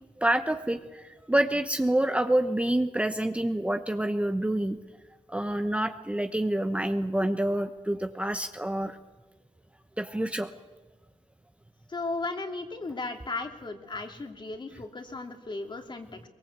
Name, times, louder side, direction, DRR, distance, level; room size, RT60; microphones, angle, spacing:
voice 1, 0.2-4.8 5.3-9.0 10.0-10.5, right 1 dB, 10° right, 7 dB, 1.0 m, -27 dB
voice 2, 11.9-16.3, left 3 dB, 35° left, 4 dB, 2.8 m, -36 dB
23.0 x 21.5 x 8.2 m, 1.3 s
cardioid pair, 95°, 13 cm